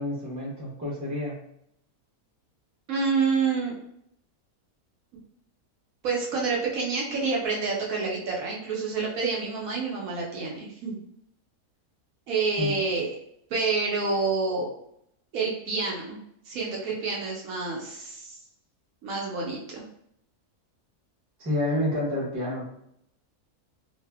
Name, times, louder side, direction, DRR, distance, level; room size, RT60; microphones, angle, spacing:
voice 1, 0.0-1.4 12.6-12.8 21.4-22.6, left 1 dB, 15° right, -5 dB, 0.6 m, -29 dB
voice 2, 2.9-3.7 6.0-11.0 12.3-13.1 13.5-14.7 15.3-16.2 16.5-18.4 19.0-19.9, right 4 dB, 70° right, -3 dB, 1.0 m, -28 dB
2.6 x 2.4 x 2.3 m, 0.73 s
omnidirectional pair, 1.6 m